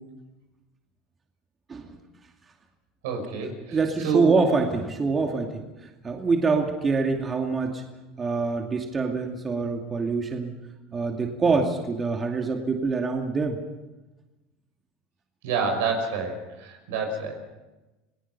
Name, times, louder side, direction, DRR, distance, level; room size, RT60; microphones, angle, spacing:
voice 1, 3.0-4.4 15.4-17.4, right 4 dB, 80° right, 4 dB, 5.7 m, -28 dB
voice 2, 3.7-7.8 8.2-10.5 10.9-13.6, right 4 dB, 25° right, 2 dB, 2.5 m, -25 dB
28.0 x 18.5 x 5.5 m, 1.1 s
supercardioid pair, 95°, 0 cm